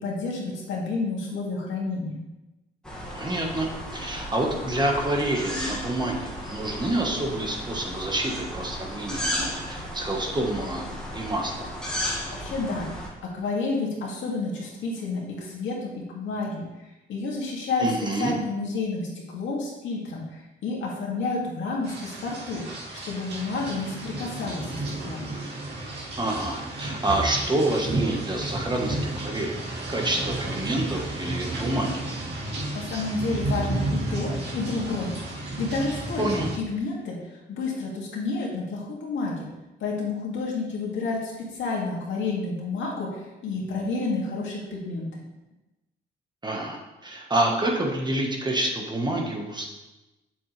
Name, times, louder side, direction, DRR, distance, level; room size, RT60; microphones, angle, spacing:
voice 1, 0.0-2.2 12.4-12.9 13.3-16.6 17.1-17.9 18.2-22.6 23.0-25.3 32.7-39.5 39.8-45.2, left 3 dB, 70° left, -3 dB, 2.4 m, -30 dB
sound 1, 2.8-13.1, equal, 5° left, 2.0 m, -34 dB
voice 2, 3.1-11.7 17.8-18.3 26.2-29.5 29.9-32.0 36.2-36.5 46.4-49.7, right 1 dB, 20° right, 1 dB, 1.4 m, -28 dB
sound 2, 21.8-36.6, right 2 dB, 60° right, 2.4 m, -32 dB
8.1 x 7.0 x 3.3 m, 1.0 s
cardioid pair, 90°, 20 cm